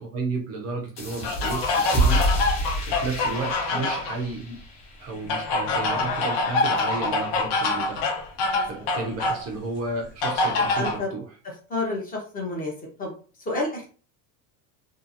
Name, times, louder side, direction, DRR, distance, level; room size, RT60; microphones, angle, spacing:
voice 1, 0.0-2.2 2.9-4.6 5.0-8.1 8.6-11.2, right 3 dB, 35° right, 0 dB, 0.4 m, -32 dB
sound 1, 1.0-6.2, right 1 dB, 35° left, 0.9 m, -28 dB
sound 2, 1.2-4.2 5.3-9.4 10.2-11.0, left 3 dB, 70° left, 0.8 m, -25 dB
voice 2, 3.7-4.0 5.1-5.3 8.5-8.9 10.8-11.1 11.7-12.7 13.0-13.1 13.4-13.9, left 2 dB, 20° left, -1 dB, 0.5 m, -30 dB
2.7 x 2.3 x 2.4 m, 0.39 s
cardioid pair, 160°, 47 cm